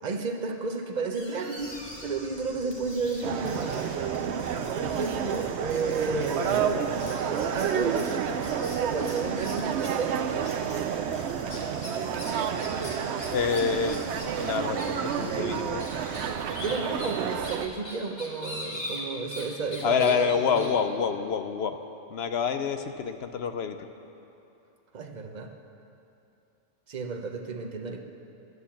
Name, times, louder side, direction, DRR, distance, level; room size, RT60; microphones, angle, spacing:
voice 1, 0.0-3.9 4.7-10.2 16.6-20.7 24.9-25.5 26.9-28.0, right 4 dB, 40° right, 4 dB, 0.8 m, -32 dB
sound 1, 1.1-2.2 2.7-10.1 10.4-10.8 11.1-19.5 19.7-20.7, left 1 dB, 35° left, 2.0 m, -42 dB
Bird / Insect, 1.6-16.3, equal, 10° left, 1.4 m, -48 dB
sound 2, 3.2-17.7, right 8 dB, 65° right, 0.8 m, -30 dB
voice 2, 13.3-14.0 14.4-15.9 19.8-21.8 22.1-23.8, left 6 dB, 60° left, 8 dB, 0.8 m, -27 dB
11.0 x 9.4 x 7.2 m, 2.7 s
omnidirectional pair, 1.3 m